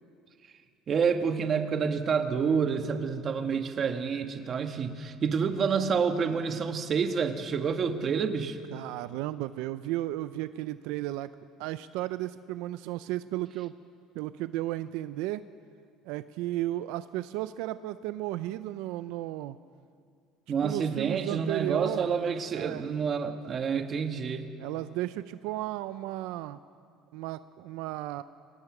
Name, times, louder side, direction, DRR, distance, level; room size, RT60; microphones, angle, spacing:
voice 1, 0.9-8.6 20.5-24.5, right 6 dB, 30° right, 7 dB, 1.3 m, -28 dB
voice 2, 8.7-11.3 11.6-13.7 14.1-15.4 16.1-19.6 20.6-22.1 22.5-22.9 24.6-26.6 27.1-28.2, right 15 dB, 80° right, 13 dB, 0.5 m, -34 dB
24.0 x 19.0 x 6.0 m, 2.3 s
cardioid pair, 150°, 0 cm